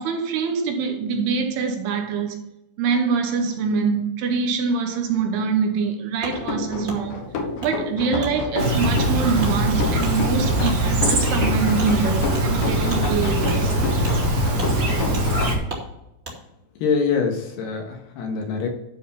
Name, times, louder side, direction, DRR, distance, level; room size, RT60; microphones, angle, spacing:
voice 1, 0.0-2.4 2.8-7.3 7.6-13.7, right 5 dB, 80° right, 3.2 m, -24 dB
Wood, 6.2-6.4 6.8-7.0 7.6-7.7 8.2-8.3 8.8-8.9 9.4-9.5 10.0-10.1 10.6-10.8 11.2-11.3 11.8-11.9 12.3-12.4 12.9-13.0 13.4-13.6 14.0-14.2 14.5-14.7 15.1-15.2 15.7-15.8 16.2-16.4, right 2 dB, 25° right, 1.5 m, -35 dB
sound 1, 6.3-15.6, left 4 dB, 70° left, 2.4 m, -29 dB
Chirp tweet, 8.6-15.5, right 1 dB, 60° right, 1.0 m, -22 dB
voice 2, 16.8-18.7, left 5 dB, 85° left, 3.6 m, -24 dB
12.0 x 4.6 x 5.8 m
omnidirectional pair, 4.6 m